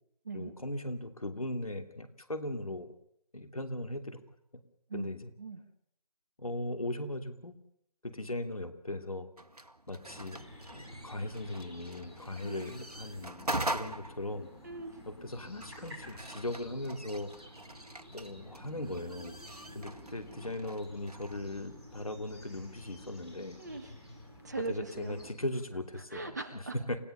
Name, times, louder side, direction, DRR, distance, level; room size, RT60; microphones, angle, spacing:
voice 1, 0.3-2.9 3.3-4.2 4.9-5.3 6.4-7.5 8.0-9.3 9.9-14.5 15.1-17.3 18.1-19.4 19.7-23.6 24.7-26.4 26.9-27.0, left 1 dB, 60° left, 7 dB, 3.0 m, -38 dB
sound 1, 9.4-21.4, right 1 dB, 70° right, 1.5 m, -43 dB
sound 2, 10.0-25.3, equal, 5° right, 3.9 m, -51 dB
voice 2, 14.6-15.0 23.6-23.9 24.4-25.2 26.1-26.7, right 2 dB, 25° right, 7 dB, 1.7 m, -39 dB
29.0 x 16.0 x 6.9 m, 0.74 s
figure-of-eight pair, 160°, 20 cm